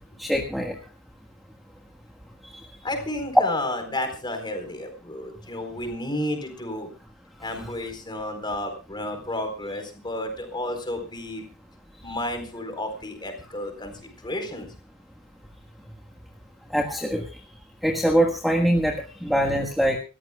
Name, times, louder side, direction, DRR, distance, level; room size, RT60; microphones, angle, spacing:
voice 1, 0.2-0.7 16.7-17.2 17.8-19.0 19.2-20.0, equal, ahead, 1 dB, 1.5 m, -23 dB
voice 2, 2.8-6.9 7.4-11.4 12.0-14.7, left 1 dB, 20° left, 6 dB, 4.1 m, -32 dB
27.5 x 14.0 x 2.3 m, 0.33 s
head